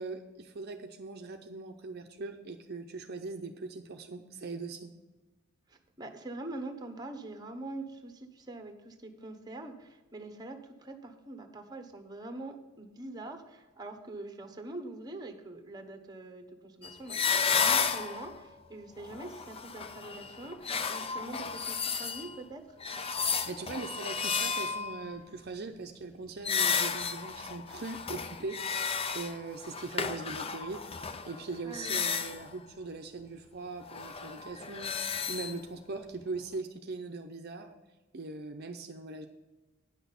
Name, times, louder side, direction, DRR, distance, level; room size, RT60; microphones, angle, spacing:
voice 1, 0.0-4.9 23.5-37.7 38.1-39.3, right 3 dB, 50° right, 4 dB, 0.7 m, -41 dB
voice 2, 5.7-22.8 31.6-32.0, right 2 dB, 20° right, 6 dB, 1.1 m, -44 dB
sound 1, 16.8-18.4 19.0-22.4 22.8-25.1 26.4-32.5 33.9-35.6, left 6 dB, 30° left, 0.5 m, -33 dB
9.8 x 6.2 x 7.0 m, 1.1 s
head